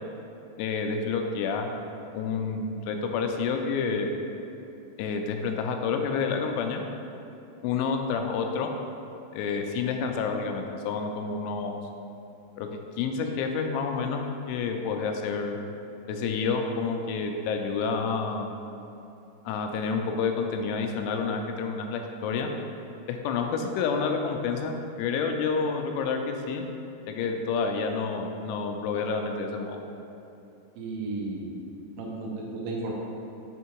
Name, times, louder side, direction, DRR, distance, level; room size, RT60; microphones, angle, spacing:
voice 1, 0.6-1.7 2.1-4.1 5.0-6.8 7.6-8.7 9.3-11.8 12.6-12.7 13.0-15.6 16.1-18.5 19.5-22.5 23.1-26.6 27.1-29.8, left 5 dB, 85° left, 4 dB, 3.0 m, -29 dB
voice 2, 30.8-31.5 32.0-32.9, right 3 dB, 90° right, -3 dB, 3.2 m, -33 dB
7.5 x 3.6 x 4.5 m, 2.9 s
omnidirectional pair, 5.4 m